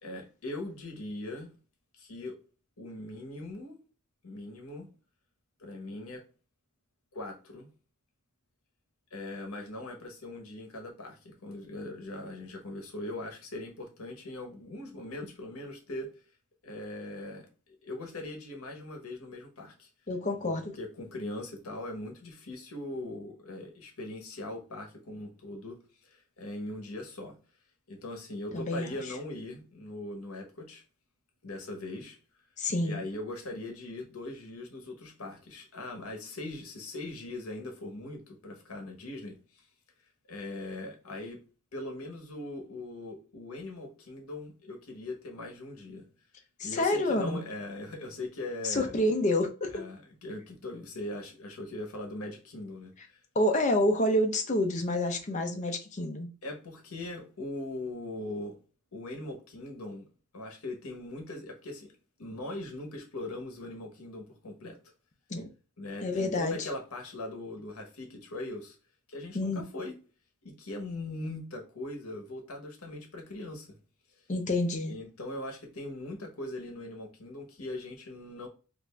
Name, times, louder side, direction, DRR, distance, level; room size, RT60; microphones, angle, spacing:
voice 1, 0.0-1.5 2.0-2.4 2.8-3.8 4.2-4.9 5.6-6.2 7.1-7.7 9.1-16.1 16.6-19.9 20.4-27.4 27.9-30.8 31.4-32.2 32.8-39.6 40.3-41.4 41.7-46.1 46.6-48.9 49.7-53.2 56.4-58.6 58.9-60.0 60.3-61.9 62.2-64.8 65.8-68.8 69.1-70.0 70.4-73.8 74.9-78.5, left 2 dB, 70° left, 0.9 m, -40 dB
voice 2, 20.1-20.6 28.5-29.0 32.6-33.0 46.6-47.4 48.6-49.8 53.4-56.3 65.3-65.5 66.0-66.7 69.3-69.6 74.3-74.9, left 1 dB, 35° left, 0.6 m, -28 dB
3.3 x 2.5 x 3.3 m
head